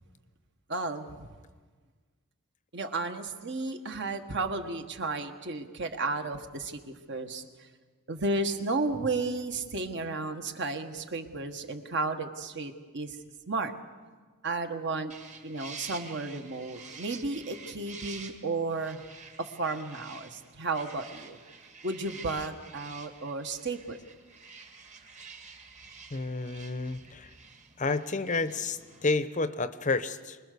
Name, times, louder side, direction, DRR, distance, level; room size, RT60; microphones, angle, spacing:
voice 1, 0.7-1.3 2.7-7.4 8.1-13.2 13.5-13.7 14.4-15.1 15.4-19.0 19.4-21.4 21.8-24.0, right 3 dB, 55° right, 6 dB, 1.6 m, -33 dB
sound 1, 15.1-29.1, right 5 dB, 35° right, 1.7 m, -48 dB
voice 2, 26.1-27.3 27.8-30.4, left 3 dB, 35° left, 12 dB, 0.8 m, -30 dB
25.0 x 20.5 x 6.8 m, 1.4 s
head